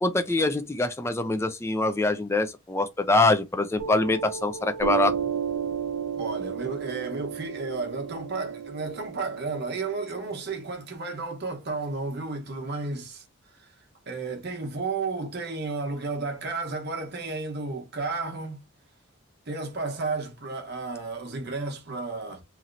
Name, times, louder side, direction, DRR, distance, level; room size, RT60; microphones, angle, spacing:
voice 1, 0.0-5.1, left 2 dB, 15° left, 0.3 m, -24 dB
Piano, 3.8-10.8, right 7 dB, 80° right, 0.6 m, -33 dB
voice 2, 6.2-13.2 13.5-13.7 14.1-18.6 19.5-22.4, right 3 dB, 50° right, 0.9 m, -32 dB
3.0 x 2.8 x 2.5 m
head